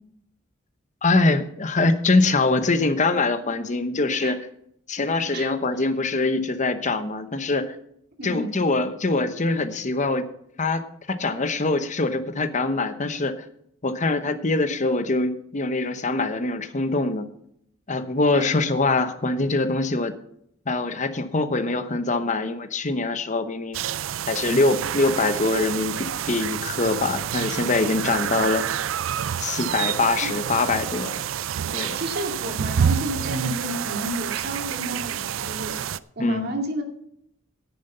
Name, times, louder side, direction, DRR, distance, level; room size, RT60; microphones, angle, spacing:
voice 1, 1.0-4.4 4.9-7.8 8.2-10.3 10.6-10.8 11.1-13.5 13.8-17.3 17.9-20.2 20.7-23.8 24.3-28.6 29.4-31.2 31.7-32.0 36.2-36.5, left 3 dB, 40° left, 10 dB, 1.0 m, -23 dB
sound 1, 23.7-36.0, right 9 dB, 75° right, 0.4 m, -28 dB
voice 2, 31.9-35.8 36.2-36.8, equal, 55° right, 3 dB, 2.3 m, -31 dB
10.5 x 9.5 x 5.5 m, 0.71 s
head